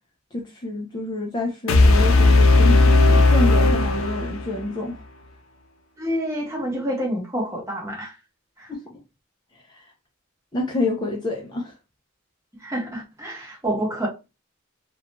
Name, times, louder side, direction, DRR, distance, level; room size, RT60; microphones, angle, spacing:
voice 1, 0.3-5.0 8.7-9.0 9.7-9.9 10.5-11.7, left 2 dB, 20° left, 0.4 m, -28 dB
sound 1, 1.7-4.7, left 2 dB, 80° left, 0.5 m, -16 dB
voice 2, 6.0-8.1 8.6-8.7 12.6-14.1, equal, 15° right, 0.9 m, -28 dB
2.4 x 2.2 x 2.9 m
head